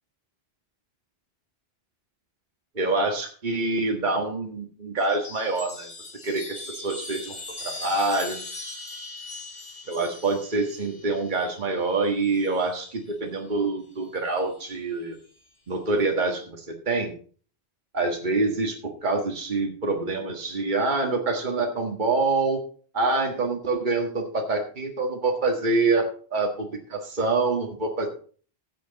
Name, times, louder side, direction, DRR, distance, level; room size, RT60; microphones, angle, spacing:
voice 1, 2.7-5.9 6.2-7.4 7.8-8.4 9.9-15.2 15.7-17.1 17.9-18.8 19.0-22.6 22.9-28.1, right 3 dB, 50° right, 2 dB, 1.7 m, -26 dB
Chime, 5.0-12.8 14.0-14.7, left 2 dB, 45° left, 2.2 m, -40 dB
15.0 x 7.8 x 4.0 m, 0.42 s
omnidirectional pair, 1.1 m